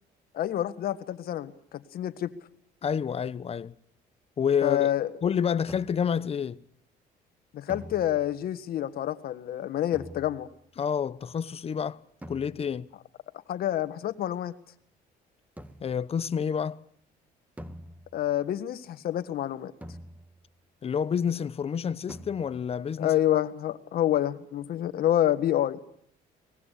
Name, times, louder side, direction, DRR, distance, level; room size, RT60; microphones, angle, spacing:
voice 1, 0.3-2.3 4.6-5.1 7.5-10.5 13.5-14.5 18.1-19.7 23.0-25.8, left 12 dB, 65° left, 1.7 m, -28 dB
voice 2, 2.8-3.7 4.4-4.9 5.2-6.6 10.8-12.9 15.8-16.8 20.8-23.1, left 7 dB, 35° left, 0.9 m, -29 dB
sound 1, 5.7-6.2 7.7-8.6 9.9-10.7 12.2-12.9 15.6-16.1 17.6-18.4 19.8-20.6 22.1-22.8, equal, 10° right, 1.7 m, -46 dB
24.0 x 19.5 x 8.4 m
cardioid pair, 110°, 17 cm